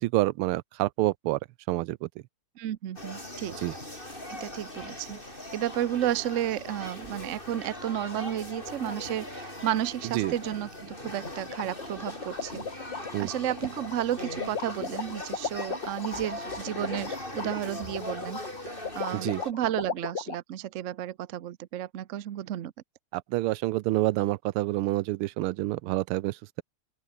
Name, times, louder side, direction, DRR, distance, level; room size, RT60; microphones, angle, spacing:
voice 1, 0.0-1.4 1.7-2.1 3.6-3.7 10.1-10.3 13.1-13.3 19.1-19.4 23.1-26.6, right 18 dB, 85° right, 1.5 m, -28 dB
voice 2, 2.6-3.6 4.3-5.2 5.5-12.7 13.2-18.4 18.9-22.7, right 12 dB, 70° right, 0.7 m, -32 dB
sound 1, 3.0-19.5, left 1 dB, 25° left, 7.5 m, -40 dB
sound 2, 11.2-20.4, left 5 dB, 55° left, 3.2 m, -35 dB
open air
omnidirectional pair, 2.3 m